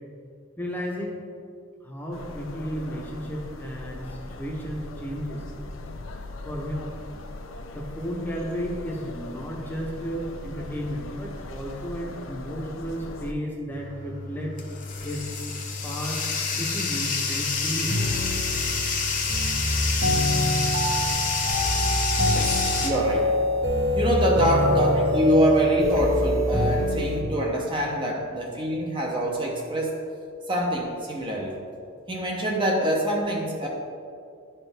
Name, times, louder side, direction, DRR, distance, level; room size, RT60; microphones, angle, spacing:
voice 1, 0.6-1.2 1.8-5.4 6.4-6.8 7.7-14.6 15.0-15.3 15.8-16.2 16.5-18.0, equal, 10° left, -2 dB, 0.8 m, -33 dB
sound 1, 2.1-13.3, left 2 dB, 70° left, 0.5 m, -40 dB
Bathtub (filling or washing), 13.7-22.9, left 5 dB, 35° left, 0.8 m, -28 dB
sound 2, 17.9-27.2, equal, 55° right, 1.3 m, -25 dB
voice 2, 22.3-23.3 23.9-30.0 30.5-31.6 32.1-33.7, equal, 25° right, -1 dB, 0.7 m, -25 dB
11.0 x 4.4 x 3.4 m, 2.4 s
head